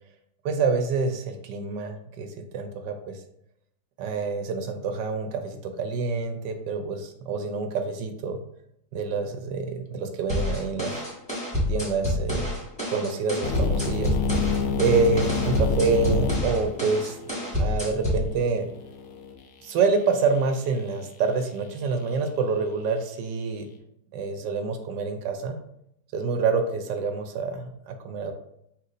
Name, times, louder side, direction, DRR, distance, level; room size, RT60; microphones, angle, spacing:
voice 1, 0.4-3.2 4.0-8.4 8.9-11.0 11.7-12.5 12.9-17.2 17.6-18.7 19.6-23.7 24.1-25.6 26.1-28.3, right 4 dB, 75° right, 6 dB, 1.1 m, -27 dB
sound 1, 10.3-18.3, left 1 dB, 5° left, 1.2 m, -28 dB
sound 2, 13.4-19.3, left 4 dB, 75° left, 0.8 m, -29 dB
5.7 x 3.0 x 2.5 m, 0.76 s
omnidirectional pair, 2.2 m